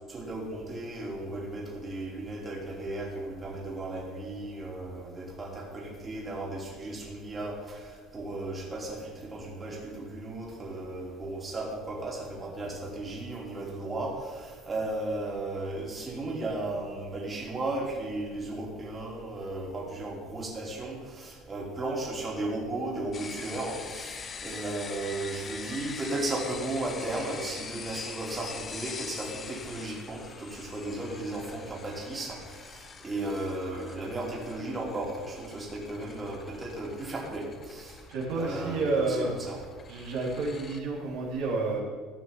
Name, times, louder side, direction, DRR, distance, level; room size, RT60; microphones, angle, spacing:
voice 1, 0.1-38.0 38.3-39.6, right 2 dB, 25° right, -2 dB, 3.5 m, -35 dB
sound 1, 23.1-40.8, left 5 dB, 35° left, 1.0 m, -44 dB
voice 2, 38.1-39.3 39.9-41.8, right 3 dB, 70° right, -4 dB, 3.3 m, -30 dB
14.5 x 6.1 x 7.3 m, 1.5 s
hypercardioid pair, 80°, 0 cm